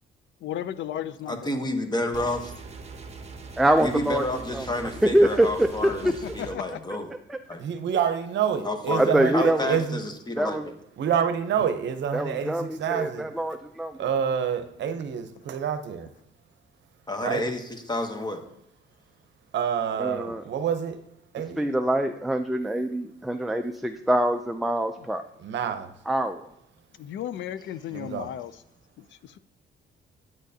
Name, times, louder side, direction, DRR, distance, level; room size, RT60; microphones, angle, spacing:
voice 1, 0.4-1.6 5.8-6.8 27.0-28.5 29.0-29.4, left 10 dB, 70° left, 0.4 m, -35 dB
voice 2, 1.3-2.5 3.8-7.1 7.5-7.6 8.6-10.7 17.1-18.4, left 1 dB, 20° left, 1.0 m, -30 dB
sound 1, 2.1-6.5, right 4 dB, 30° right, 0.9 m, -41 dB
voice 3, 3.6-4.2 4.5-6.1 7.3-7.4 9.0-9.7 10.4-10.6 12.1-14.0 20.0-20.4 21.6-25.2 26.1-26.4, right 1 dB, ahead, 0.4 m, -24 dB
voice 4, 7.6-10.0 11.0-13.3 14.0-16.1 17.2-17.5 19.5-21.0 21.3-21.7 25.4-25.9 27.9-28.3, right 8 dB, 65° right, 0.7 m, -27 dB
8.9 x 6.3 x 2.7 m
cardioid pair, 90°, 20 cm